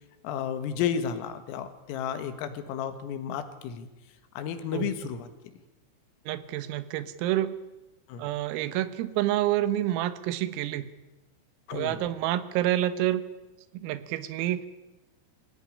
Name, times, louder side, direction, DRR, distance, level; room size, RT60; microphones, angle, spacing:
voice 1, 0.2-3.9 4.4-5.3 8.1-8.3 11.7-12.0, left 8 dB, 80° left, 9 dB, 4.2 m, -32 dB
voice 2, 6.3-7.6 8.2-10.9 11.7-13.2 13.7-14.7, right 13 dB, 85° right, 14 dB, 3.8 m, -28 dB
23.5 x 17.0 x 10.0 m, 1.0 s
omnidirectional pair, 6.0 m